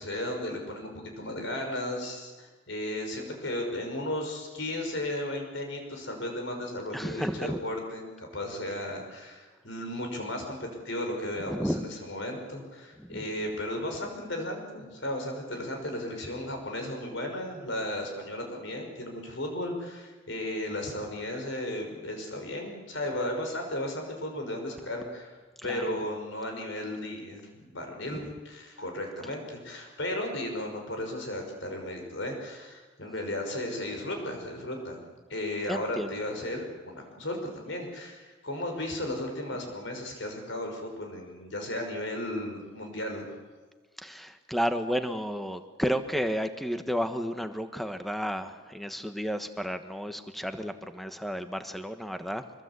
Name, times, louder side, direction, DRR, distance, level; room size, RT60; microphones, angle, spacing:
voice 1, 0.0-25.4 25.6-35.0 35.3-43.2, left 1 dB, 65° left, 3 dB, 5.9 m, -35 dB
voice 2, 6.9-7.6 11.5-11.9 13.0-13.2 25.6-26.0 28.1-28.3 35.7-36.1 44.0-52.4, equal, ahead, 8 dB, 1.3 m, -32 dB
25.5 x 21.5 x 8.3 m, 1.3 s
head